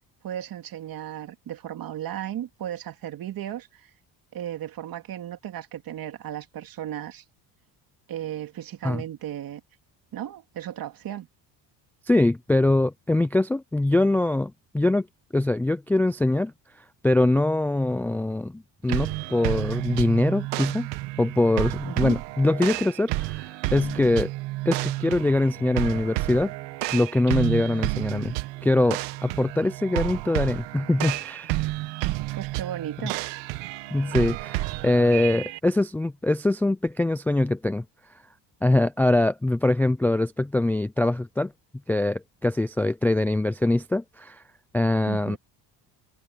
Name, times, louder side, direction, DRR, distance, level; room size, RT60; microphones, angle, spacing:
voice 1, 0.2-3.9 4.3-7.2 8.1-9.6 10.1-11.3 21.8-22.2 32.4-33.2 45.1-45.4, right 11 dB, 55° right, 3.0 m, -35 dB
voice 2, 12.1-15.1 15.3-16.5 17.0-20.9 21.2-24.3 24.7-26.5 26.9-28.3 28.6-31.5 33.9-37.8 38.6-41.5 41.9-44.4 44.7-45.4, left 2 dB, 5° left, 0.3 m, -23 dB
sound 1, 18.9-35.6, right 19 dB, 90° right, 1.3 m, -31 dB
cardioid pair, 130°, 42 cm